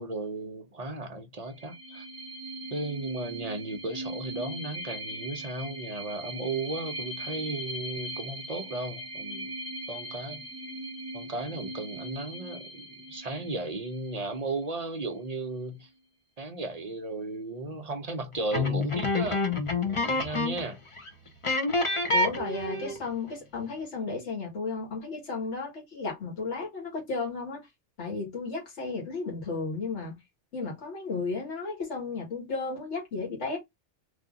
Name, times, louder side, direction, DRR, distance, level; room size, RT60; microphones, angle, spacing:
voice 1, 0.0-2.0 2.7-9.5 9.9-10.4 11.1-15.9 16.4-19.5 19.7-20.8, right 2 dB, 45° right, 0.6 m, -35 dB
sound 1, 1.5-14.9, right 1 dB, 15° right, 1.1 m, -40 dB
sound 2, 18.5-20.7 21.0-21.1 21.4-23.1, left 3 dB, 30° left, 0.7 m, -27 dB
voice 2, 22.1-27.6 28.0-30.1 30.5-33.6, left 4 dB, 70° left, 1.9 m, -34 dB
3.3 x 2.7 x 3.7 m
omnidirectional pair, 1.2 m